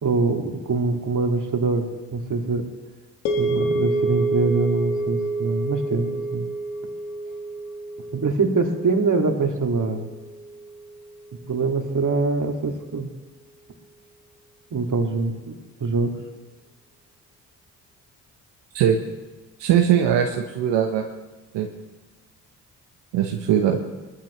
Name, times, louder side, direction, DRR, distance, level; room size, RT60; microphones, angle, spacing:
voice 1, 0.0-2.7 3.4-6.5 8.1-10.1 11.5-13.1 14.7-15.5 15.8-16.1, right 3 dB, 45° right, 3 dB, 2.3 m, -24 dB
sound 1, 3.2-11.5, right 2 dB, 90° left, 1.5 m, -28 dB
voice 2, 19.6-21.0 21.5-21.7 23.1-23.8, right 9 dB, 75° right, 3 dB, 1.1 m, -20 dB
20.0 x 14.0 x 3.2 m, 1.2 s
hypercardioid pair, 45°, 43 cm